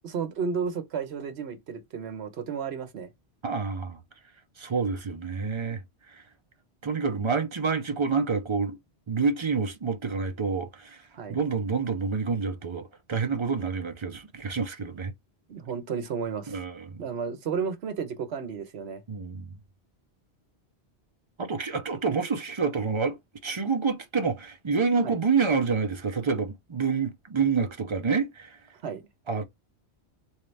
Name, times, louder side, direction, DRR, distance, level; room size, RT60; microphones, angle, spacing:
voice 1, 0.0-3.1 11.1-11.4 15.5-16.6 17.0-19.0 25.0-25.2 28.8-29.0, right 6 dB, 75° right, 1.1 m, -32 dB
voice 2, 3.4-4.0 4.6-5.8 6.1-6.2 6.8-8.8 9.1-11.0 11.3-15.1 16.5-17.0 19.1-19.5 21.4-23.2 23.4-28.6 29.3-29.4, right 5 dB, 35° right, 0.5 m, -28 dB
3.6 x 2.8 x 3.2 m
omnidirectional pair, 1.1 m